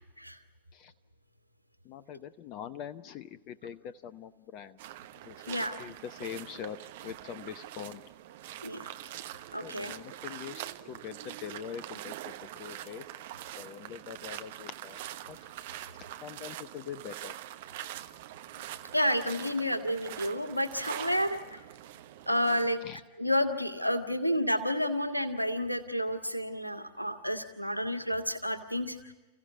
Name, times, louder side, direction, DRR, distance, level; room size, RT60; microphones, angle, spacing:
voice 1, 1.8-4.8 5.2-6.8 7.0-8.0 9.6-13.0 13.6-15.0 15.3-15.4 16.2-17.3 22.8-23.0 29.0-29.1, left 8 dB, 40° left, 14 dB, 0.8 m, -43 dB
sound 1, 4.8-22.7, right 13 dB, 55° right, 1.1 m, -44 dB
voice 2, 5.5-5.8 8.6-8.9 9.5-9.9 18.9-21.6 22.3-22.8 23.2-29.0, equal, 90° left, 6 dB, 1.7 m, -30 dB
29.0 x 15.5 x 8.5 m, 1.2 s
figure-of-eight pair, 90°, 0 cm